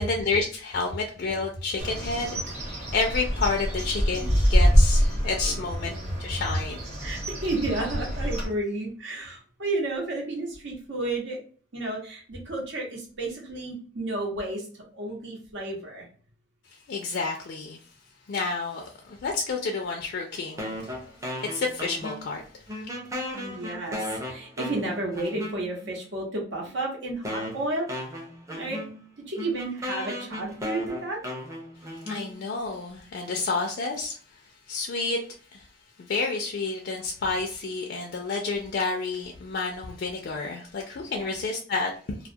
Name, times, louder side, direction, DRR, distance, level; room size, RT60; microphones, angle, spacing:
voice 1, 0.0-6.8 16.9-17.8 18.3-20.9 21.4-22.4 22.8-22.9 32.1-34.2 34.7-35.2 35.5-35.7 36.0-42.2, left 3 dB, 60° left, 0 dB, 0.4 m, -30 dB
Bird, 1.8-8.4, equal, 35° right, 0.9 m, -25 dB
voice 2, 7.0-11.4 11.7-14.7 14.9-16.1 23.3-28.0 28.5-28.8 29.2-31.2 41.1-41.2, right 2 dB, 75° right, -1 dB, 0.8 m, -32 dB
sound 1, 20.6-22.4 22.7-25.9 26.7-26.8 27.2-32.6, left 1 dB, 15° right, 0.5 m, -36 dB
2.3 x 2.1 x 2.6 m, 0.43 s
head